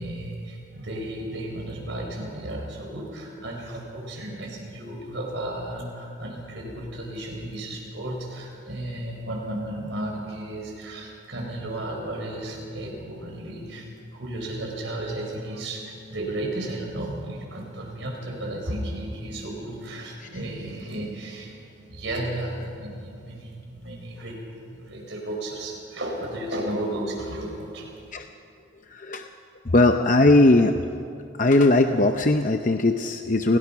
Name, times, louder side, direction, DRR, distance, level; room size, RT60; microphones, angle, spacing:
voice 1, 0.0-24.4 24.6-27.9, right 1 dB, 65° right, 0 dB, 5.3 m, -34 dB
voice 2, 28.9-29.3 29.6-30.8 31.4-33.6, left 2 dB, 40° left, 6 dB, 0.7 m, -19 dB
29.0 x 17.5 x 5.9 m, 2.6 s
head